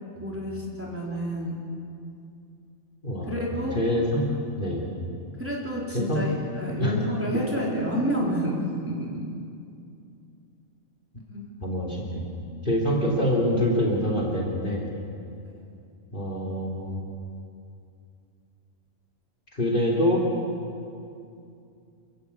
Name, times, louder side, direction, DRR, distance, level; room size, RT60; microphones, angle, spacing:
voice 1, 0.2-1.6 3.3-3.8 5.4-9.2 11.3-11.5, equal, 10° right, -4 dB, 4.1 m, -29 dB
voice 2, 3.0-3.4 3.8-4.3 4.6-4.9 5.9-6.2 6.6-7.0 11.6-12.2 12.6-14.9 16.1-17.0 19.5-20.2, equal, 40° left, -1 dB, 3.4 m, -25 dB
28.5 x 15.5 x 8.6 m, 2.5 s
omnidirectional pair, 1.3 m